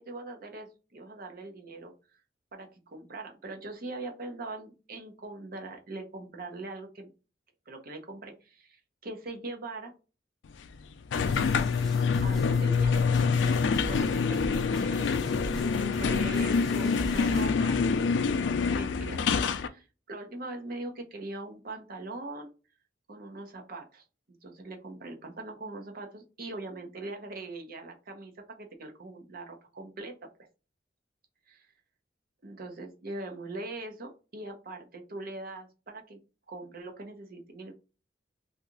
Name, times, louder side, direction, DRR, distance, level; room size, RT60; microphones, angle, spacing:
voice 1, 0.0-2.2 2.5-7.1 7.7-9.9 12.2-15.3 15.6-17.8 18.3-22.5 23.1-30.3 32.4-36.2 36.5-37.7, right 2 dB, 55° right, 4 dB, 0.7 m, -41 dB
sound 1, 11.1-19.7, left 5 dB, 90° left, 0.4 m, -26 dB
sound 2, 11.1-17.5, equal, ahead, 0.8 m, -40 dB
2.8 x 2.4 x 3.7 m, 0.33 s
head